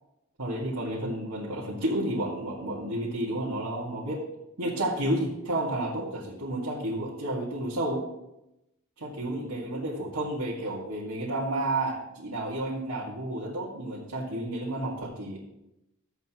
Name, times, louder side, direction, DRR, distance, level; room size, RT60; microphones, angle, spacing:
voice 1, 0.4-4.2 4.6-8.0 9.0-15.4, right 1 dB, 80° right, -7 dB, 2.0 m, -31 dB
13.0 x 8.0 x 3.0 m, 0.90 s
head